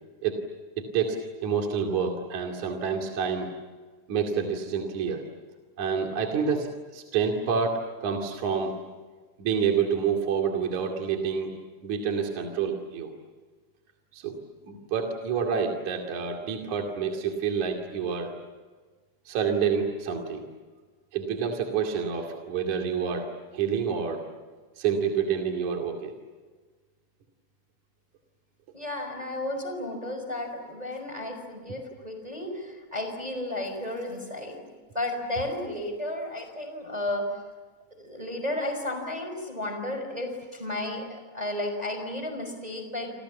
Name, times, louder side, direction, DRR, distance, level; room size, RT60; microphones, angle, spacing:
voice 1, 0.8-3.5 4.1-5.2 5.8-8.7 9.4-11.5 11.8-13.1 14.1-14.3 14.7-18.3 19.3-20.4 21.1-24.2 24.8-26.1, right 6 dB, 45° right, 2 dB, 3.1 m, -28 dB
voice 2, 28.7-34.6 34.9-37.2 38.0-43.1, left 1 dB, 10° right, 4 dB, 4.5 m, -33 dB
29.0 x 27.5 x 7.3 m, 1.4 s
omnidirectional pair, 5.7 m